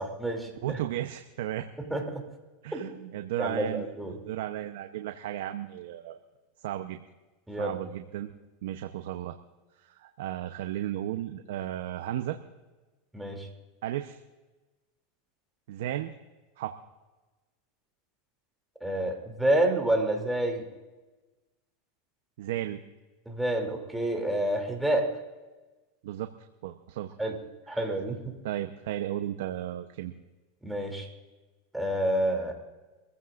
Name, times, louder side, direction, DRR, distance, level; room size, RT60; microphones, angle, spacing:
voice 1, 0.0-0.8 1.8-2.1 2.7-3.1 3.4-4.1 7.5-7.8 13.1-13.5 18.8-20.6 23.3-25.1 27.2-27.3 27.7-28.3 30.6-31.1 31.7-32.6, right 1 dB, 5° right, 1 dB, 2.9 m, -28 dB
voice 2, 0.6-1.7 2.6-3.9 4.2-6.2 6.6-7.0 7.6-8.3 8.6-9.4 9.8-12.4 13.8-14.2 15.7-16.1 16.6-16.7 22.4-22.8 26.0-26.3 26.6-27.3 27.7-27.9 28.4-30.1, right 12 dB, 75° right, 7 dB, 0.8 m, -34 dB
24.5 x 15.5 x 2.6 m, 1.2 s
supercardioid pair, 130°, 0 cm